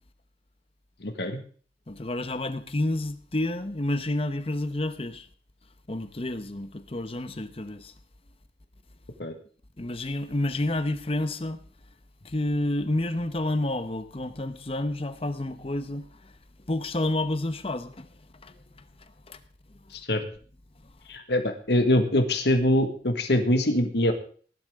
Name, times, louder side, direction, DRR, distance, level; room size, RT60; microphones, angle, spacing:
voice 1, 1.0-1.4 9.2-9.3 19.9-20.2 21.1-24.1, left 1 dB, 65° left, 1.7 m, -24 dB
voice 2, 1.9-5.3 5.9-7.9 9.8-11.6 12.2-16.4 16.7-18.1 18.4-19.4, left 1 dB, 30° left, 0.9 m, -30 dB
18.5 x 11.5 x 3.6 m
head